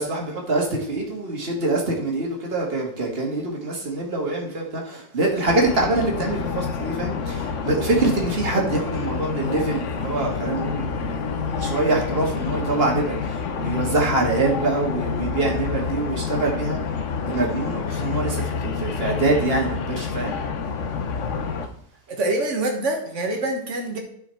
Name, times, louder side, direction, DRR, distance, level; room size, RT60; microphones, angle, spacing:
voice 1, 0.0-16.8 17.2-20.4, right 2 dB, 55° right, -1 dB, 2.1 m, -25 dB
sound 1, 5.5-21.7, left 5 dB, 85° left, 1.2 m, -28 dB
voice 2, 22.1-24.0, right 2 dB, 80° right, 2 dB, 1.7 m, -25 dB
10.5 x 5.6 x 4.5 m, 0.66 s
omnidirectional pair, 1.2 m